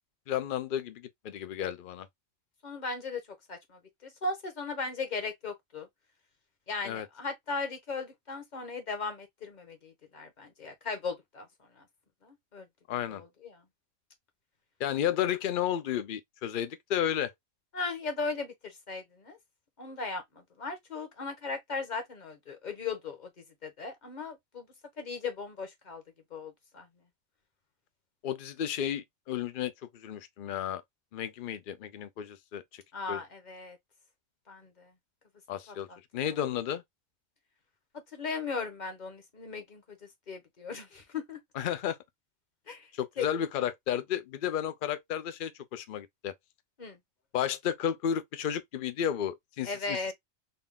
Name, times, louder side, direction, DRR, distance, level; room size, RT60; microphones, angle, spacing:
voice 1, 0.3-2.1 6.8-7.1 12.9-13.2 14.8-17.3 28.2-30.8 31.1-32.8 33.1-33.2 35.5-35.9 36.1-36.8 41.5-42.0 43.0-46.3 47.3-50.1, left 10 dB, 55° left, 0.6 m, -32 dB
voice 2, 2.6-3.2 3.5-5.9 6.7-11.5 11.8-11.9 12.2-12.7 13.1-13.6 17.7-19.4 19.8-23.3 23.6-24.7 25.0-26.0 26.3-26.9 32.9-33.8 34.5-34.9 35.7-36.0 38.1-39.8 40.3-41.4 42.7-42.9 43.2-43.3 46.8-47.0 49.6-50.1, left 4 dB, 35° left, 1.1 m, -37 dB
4.0 x 2.2 x 3.6 m
omnidirectional pair, 1.4 m